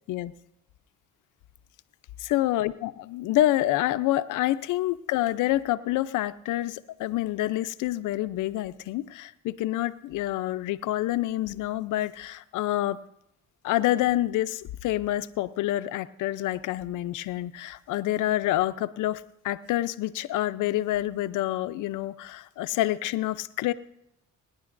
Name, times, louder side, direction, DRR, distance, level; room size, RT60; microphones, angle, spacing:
voice 1, 2.2-13.0 13.6-23.7, left 15 dB, 85° left, 13 dB, 0.6 m, -27 dB
25.0 x 10.5 x 2.6 m, 0.81 s
cardioid pair, 90°, 30 cm